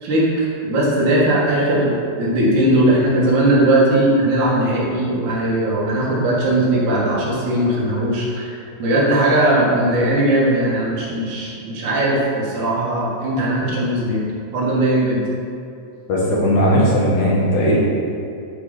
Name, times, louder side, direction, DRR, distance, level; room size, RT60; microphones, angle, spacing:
voice 1, 0.0-8.5 8.8-14.2 14.5-15.2 16.3-16.4, right 1 dB, 75° right, -5 dB, 3.4 m, -18 dB
voice 2, 16.1-17.8, equal, 75° left, -5 dB, 3.4 m, -17 dB
11.0 x 5.3 x 5.2 m, 2.6 s
omnidirectional pair, 3.5 m